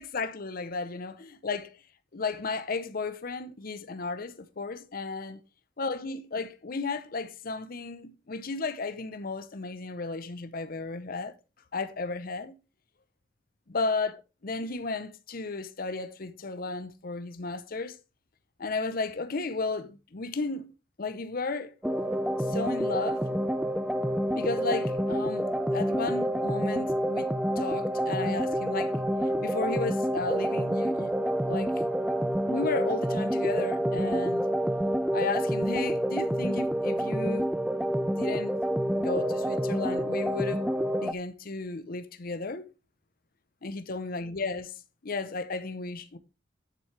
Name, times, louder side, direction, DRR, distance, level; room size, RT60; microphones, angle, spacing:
voice 1, 0.0-1.8 2.1-5.4 5.8-11.3 11.7-12.6 13.7-18.0 18.6-20.7 21.0-21.7 22.5-23.2 24.3-27.3 27.6-28.9 29.4-31.1 31.5-31.7 32.5-34.4 35.1-37.5 38.1-38.5 39.0-40.6 41.0-42.7 43.6-44.7 45.0-46.2, left 3 dB, 50° left, 0.7 m, -34 dB
sound 1, 21.8-41.1, equal, 5° right, 0.4 m, -28 dB
10.5 x 6.5 x 3.3 m
head